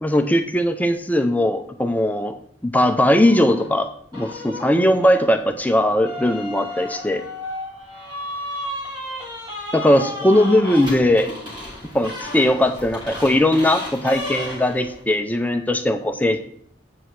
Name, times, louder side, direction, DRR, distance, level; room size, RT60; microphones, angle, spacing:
voice 1, 0.0-2.3 2.7-7.2 9.7-11.3 11.9-16.4, left 1 dB, 10° left, 6 dB, 0.5 m, -19 dB
sound 1, 3.1-3.7 4.1-15.0, left 1 dB, 25° right, 2.7 m, -33 dB
8.1 x 4.8 x 5.7 m, 0.62 s
head